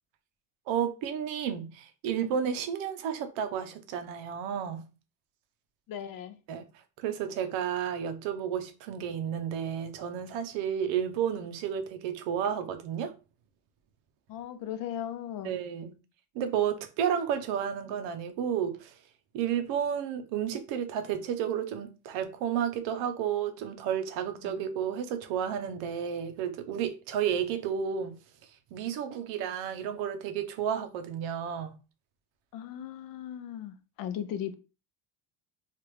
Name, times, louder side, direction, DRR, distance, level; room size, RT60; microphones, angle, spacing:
voice 1, 0.7-4.8 6.5-6.7 7.0-13.1 15.4-15.9 16.3-18.9 19.3-28.2 28.7-31.7, right 8 dB, 80° right, 0.8 m, -32 dB
voice 2, 5.9-6.4 14.3-15.6 24.4-24.6 32.5-34.5, left 10 dB, 50° left, 0.5 m, -37 dB
3.2 x 2.5 x 3.2 m
cardioid pair, 145°, 44 cm